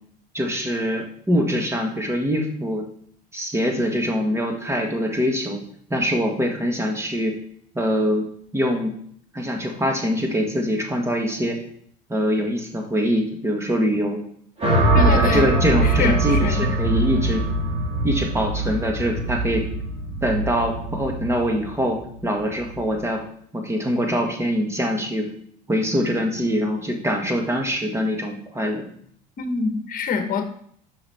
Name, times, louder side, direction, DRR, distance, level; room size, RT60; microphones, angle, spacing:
voice 1, 0.3-2.9 3.3-5.6 5.9-7.4 7.7-8.3 8.5-8.9 9.3-11.6 12.1-14.2 14.9-17.4 18.0-19.7 20.2-23.2 23.5-25.3 25.7-28.8, equal, 15° right, 2 dB, 1.6 m, -23 dB
sound 1, 14.6-22.9, right 2 dB, 30° right, 3.5 m, -22 dB
voice 2, 14.9-15.5 15.8-16.6 29.4-30.5, left 5 dB, 45° left, 6 dB, 1.3 m, -25 dB
6.2 x 5.6 x 4.2 m, 0.63 s
supercardioid pair, 85°, 20 cm